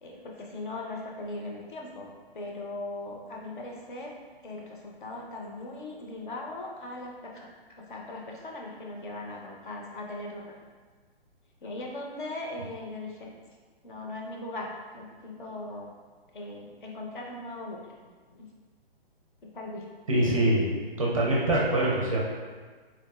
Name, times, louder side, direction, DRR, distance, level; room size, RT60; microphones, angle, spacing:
voice 1, 0.0-4.1 4.4-10.5 11.6-13.3 13.8-15.9 16.3-18.5 19.5-19.9, left 2 dB, 55° left, -1 dB, 0.6 m, -39 dB
voice 2, 20.1-20.7 21.0-22.2, right 1 dB, 35° right, -4 dB, 0.5 m, -24 dB
3.8 x 2.4 x 2.2 m, 1.5 s
hypercardioid pair, 165°, 31 cm